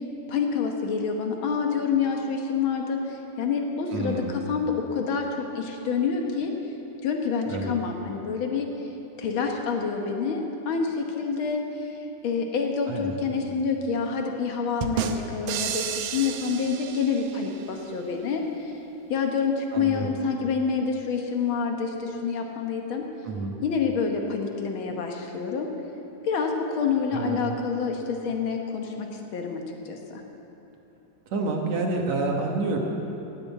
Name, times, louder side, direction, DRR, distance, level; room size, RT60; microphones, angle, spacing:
voice 1, 0.3-6.5 7.0-8.7 9.2-18.8 19.1-23.0 23.6-25.7 26.2-30.2, left 5 dB, 65° left, 2 dB, 1.3 m, -27 dB
voice 2, 3.9-4.4 7.5-7.7 12.9-13.2 19.7-20.1 23.3-23.5 27.1-27.4 31.3-32.8, right 3 dB, 60° right, 1 dB, 2.2 m, -28 dB
sound 1, 14.8-17.6, right 8 dB, 85° right, 2.5 m, -31 dB
16.5 x 8.9 x 8.2 m, 3.0 s
omnidirectional pair, 3.8 m